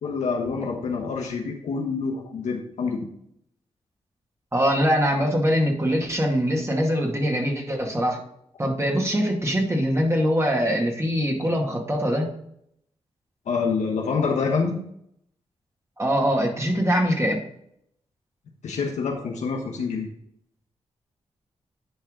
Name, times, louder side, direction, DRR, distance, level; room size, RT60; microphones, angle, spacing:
voice 1, 0.0-3.1 13.5-14.8 18.6-20.1, left 5 dB, 90° left, 1 dB, 1.1 m, -26 dB
voice 2, 4.5-8.2 8.6-12.3 16.0-17.4, equal, 25° right, 0 dB, 2.2 m, -23 dB
10.5 x 4.5 x 3.8 m, 0.72 s
cardioid pair, 60°, 12 cm